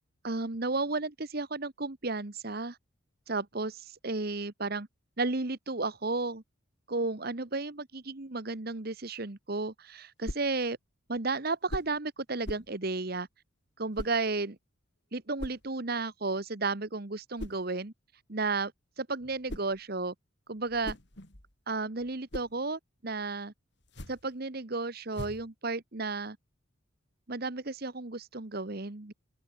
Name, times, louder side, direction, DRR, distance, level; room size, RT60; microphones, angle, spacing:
voice 1, 0.2-2.8 3.3-4.9 5.2-6.4 6.9-10.8 11.1-13.3 13.8-14.6 15.1-17.9 18.3-18.7 19.0-20.1 20.5-21.0 21.7-23.5 24.1-26.4 27.3-29.1, right 3 dB, 50° right, 1.3 m, -33 dB
sound 1, 10.2-10.6 11.7-12.0 12.4-12.8 13.9-14.2 15.4-15.7 17.4-17.7 19.2-19.8 20.6-21.5 22.0-22.6 23.8-24.3 25.1-25.5, left 1 dB, 60° left, 4.4 m, -41 dB
open air
head